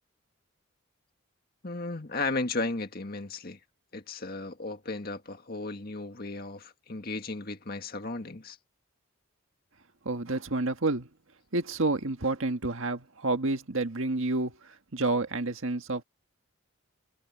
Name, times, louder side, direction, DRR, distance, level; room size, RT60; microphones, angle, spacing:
voice 1, 1.6-3.6 3.9-8.6, left 3 dB, 45° left, 1.9 m, -35 dB
voice 2, 10.0-11.1 11.5-16.0, right 2 dB, 70° right, 1.7 m, -29 dB
head